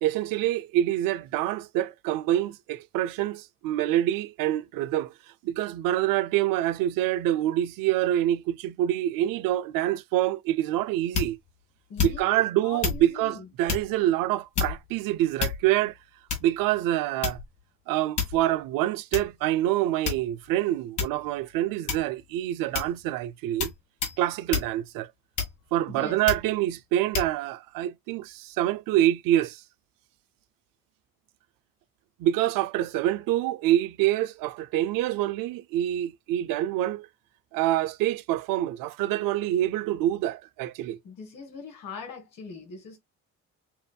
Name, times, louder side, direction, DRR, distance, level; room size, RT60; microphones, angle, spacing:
voice 1, 0.0-5.1 5.4-11.4 12.0-16.0 16.4-17.4 17.9-23.7 24.2-25.1 25.7-29.6 32.2-37.1 37.5-41.0, right 13 dB, 80° right, 0.5 m, -26 dB
sound 1, 11.1-11.5 12.0-12.4 12.8-13.1 13.7-13.9 14.5-14.9 15.4-15.8 16.3-16.6 17.2-17.6 18.2-18.5 19.1-19.3 20.0-20.5 21.0-21.2 21.9-22.2 22.7-23.0 23.6-23.8 24.0-24.2 24.5-24.7 25.4-25.8 26.3-26.5 27.1-27.3, left 6 dB, 60° left, 2.0 m, -29 dB
voice 2, 11.9-13.5 25.9-26.2 41.0-43.0, left 4 dB, 75° left, 2.1 m, -41 dB
6.9 x 2.6 x 2.2 m
supercardioid pair, 60°, 33 cm